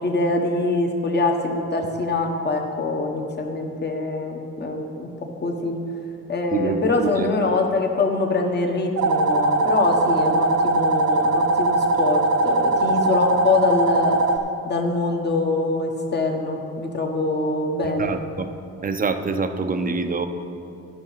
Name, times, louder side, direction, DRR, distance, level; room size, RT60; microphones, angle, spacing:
voice 1, 0.0-5.1 5.4-5.8 6.3-14.2 14.6-18.1, left 3 dB, 35° left, 2 dB, 1.3 m, -24 dB
voice 2, 6.5-7.3 18.0-18.5 18.8-20.3, right 4 dB, 30° right, 8 dB, 0.7 m, -25 dB
sound 1, 9.0-14.4, right 2 dB, 70° right, 0.8 m, -20 dB
11.0 x 6.0 x 5.7 m, 2.7 s
cardioid pair, 90°, 30 cm